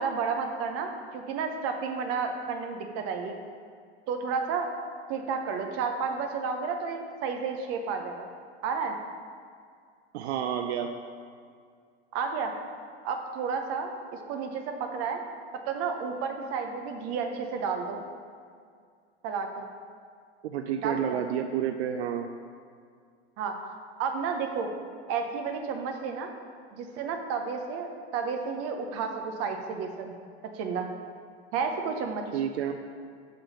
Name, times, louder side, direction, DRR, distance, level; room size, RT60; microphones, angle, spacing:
voice 1, 0.0-3.4 4.1-4.7 5.1-8.3 8.6-8.9 12.1-12.5 13.0-15.2 15.7-18.0 19.2-19.7 20.8-21.2 23.4-23.6 24.0-24.7 25.1-26.3 26.7-30.2 30.5-30.9 31.5-32.2, right 5 dB, 45° right, 4 dB, 0.9 m, -31 dB
voice 2, 10.1-10.9 20.4-22.3 32.3-32.7, right 9 dB, 75° right, 5 dB, 0.5 m, -30 dB
6.8 x 3.8 x 5.6 m, 2.2 s
hypercardioid pair, 115°, 33 cm